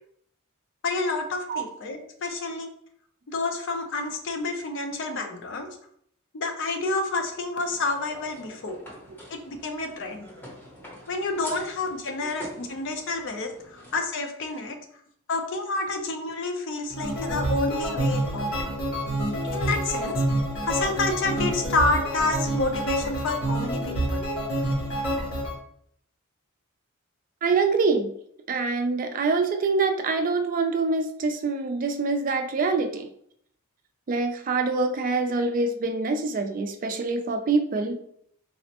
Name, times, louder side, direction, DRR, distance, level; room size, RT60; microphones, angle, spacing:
voice 1, 0.8-2.7 3.3-5.7 6.3-8.8 9.3-10.3 11.1-14.8 15.3-18.5 19.5-20.1 20.6-24.2, left 3 dB, 55° left, 5 dB, 0.5 m, -29 dB
sound 1, 7.7-14.0, equal, 10° left, 0.7 m, -45 dB
sound 2, 16.9-25.5, right 1 dB, 85° left, 1.1 m, -27 dB
voice 2, 27.4-28.1 28.5-33.1 34.1-37.9, right 4 dB, 40° right, 5 dB, 0.3 m, -25 dB
4.0 x 2.1 x 2.8 m, 0.67 s
head